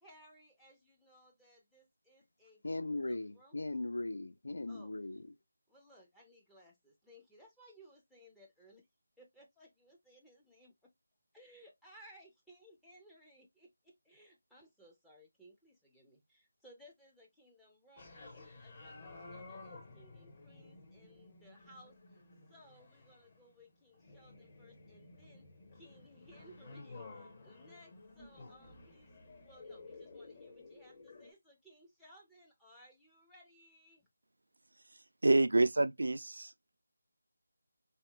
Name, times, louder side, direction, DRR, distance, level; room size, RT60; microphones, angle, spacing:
voice 1, 0.0-2.6 3.1-3.6 4.7-4.9 5.7-8.9 9.2-10.9 11.3-22.0 22.5-25.5 25.7-29.1 29.4-34.0, equal, 5° left, 0.5 m, -61 dB
voice 2, 2.6-5.2, left 2 dB, 75° left, 0.4 m, -38 dB
sound 1, 18.0-31.3, left 3 dB, 35° left, 0.8 m, -54 dB
voice 3, 35.2-36.8, right 2 dB, 80° right, 0.3 m, -28 dB
3.0 x 2.8 x 2.2 m
figure-of-eight pair, 165°, 0 cm